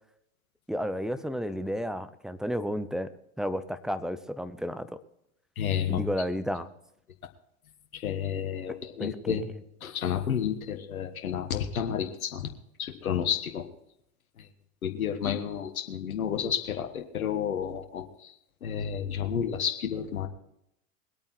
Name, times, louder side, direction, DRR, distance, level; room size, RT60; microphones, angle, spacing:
voice 1, 0.7-3.1 3.4-4.9 5.9-6.7 9.0-9.4, equal, ahead, 13 dB, 0.8 m, -32 dB
voice 2, 5.6-6.0 7.9-9.4 9.8-12.5 12.8-13.7 14.4-14.5 14.8-18.3 18.6-20.3, left 8 dB, 85° left, 6 dB, 1.5 m, -31 dB
21.5 x 8.7 x 4.4 m, 0.76 s
hypercardioid pair, 95°, 41 cm